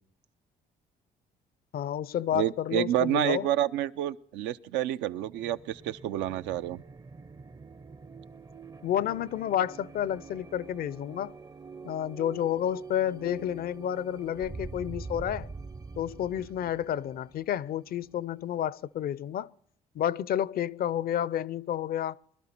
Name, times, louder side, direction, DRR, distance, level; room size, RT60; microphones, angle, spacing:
voice 1, 1.7-3.5 8.8-11.3 11.8-15.5 16.0-19.5 19.9-22.2, left 10 dB, 60° left, 0.5 m, -30 dB
voice 2, 2.3-6.8, right 12 dB, 85° right, 0.5 m, -29 dB
sound 1, 5.2-18.7, right 4 dB, 20° right, 0.5 m, -45 dB
22.0 x 12.0 x 4.4 m
supercardioid pair, 70°, 18 cm